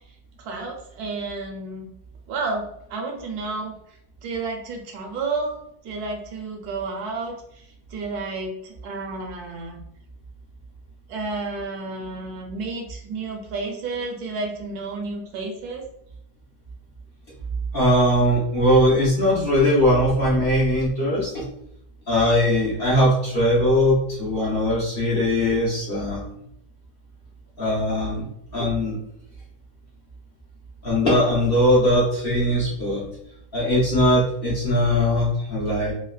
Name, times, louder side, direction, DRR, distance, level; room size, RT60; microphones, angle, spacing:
voice 1, 0.4-1.9 2.3-2.6 2.9-3.7 4.2-5.5 5.8-7.4 7.9-9.8 11.1-15.8, right 3 dB, 70° right, 1 dB, 1.1 m, -31 dB
voice 2, 17.7-21.4 22.1-26.2 27.6-28.2 28.5-29.0 30.8-33.1 33.5-35.9, left 1 dB, 50° left, -7 dB, 0.7 m, -20 dB
3.2 x 2.1 x 2.3 m, 0.76 s
omnidirectional pair, 1.9 m